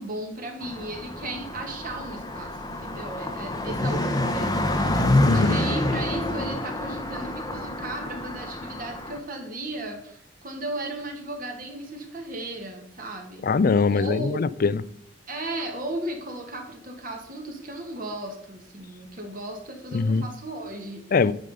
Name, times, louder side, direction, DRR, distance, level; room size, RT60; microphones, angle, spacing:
voice 1, 0.0-13.5 13.9-14.5 15.3-21.1, right 1 dB, 45° right, 2 dB, 1.7 m, -35 dB
Car passing by, 0.6-9.2, left 1 dB, 20° left, 0.8 m, -27 dB
voice 2, 5.2-5.6 13.4-14.8 19.9-20.2 21.1-21.3, left 4 dB, 45° left, 18 dB, 0.4 m, -22 dB
9.3 x 5.0 x 5.3 m, 0.74 s
head